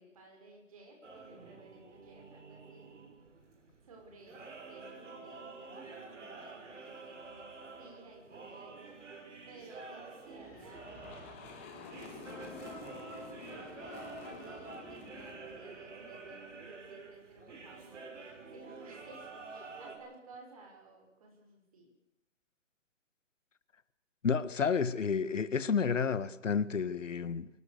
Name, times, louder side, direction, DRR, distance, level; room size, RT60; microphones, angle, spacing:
voice 1, 0.0-2.9 3.8-21.9, right 2 dB, 25° right, 6.1 m, -56 dB
sound 1, 1.0-20.0, right 3 dB, 65° right, 6.3 m, -49 dB
sound 2, 10.3-16.7, left 4 dB, 10° left, 1.6 m, -50 dB
voice 2, 24.2-27.5, left 6 dB, 70° left, 1.6 m, -30 dB
24.5 x 18.5 x 6.8 m
hypercardioid pair, 180°, 38 cm